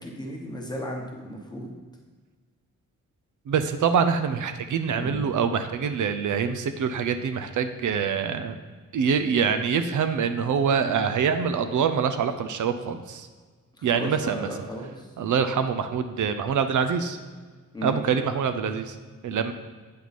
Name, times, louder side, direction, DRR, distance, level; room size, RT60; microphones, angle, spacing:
voice 1, 0.0-1.7 4.9-5.2 13.8-15.1 17.7-18.2, equal, 15° left, 0 dB, 1.1 m, -35 dB
voice 2, 3.5-8.6 8.9-13.3 13.8-14.5 15.2-17.2 17.8-19.0 19.2-19.5, right 6 dB, 75° right, 9 dB, 0.5 m, -25 dB
8.5 x 4.7 x 4.1 m, 1.4 s
wide cardioid pair, 160°, 31 cm